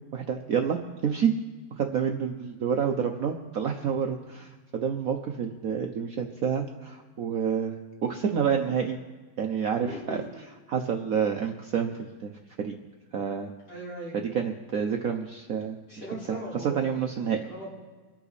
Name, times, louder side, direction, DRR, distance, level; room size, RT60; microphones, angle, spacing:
voice 1, 0.1-1.3 1.8-9.0 9.4-10.2 10.7-12.3 12.6-12.7 13.1-13.5 14.1-15.8 16.3-16.4 16.6-17.4, right 7 dB, 60° right, 3 dB, 1.0 m, -28 dB
voice 2, 9.8-10.2 13.7-14.2 15.9-16.8 17.2-17.8, equal, 55° left, -10 dB, 6.6 m, -39 dB
25.0 x 8.7 x 4.1 m, 1.3 s
omnidirectional pair, 2.1 m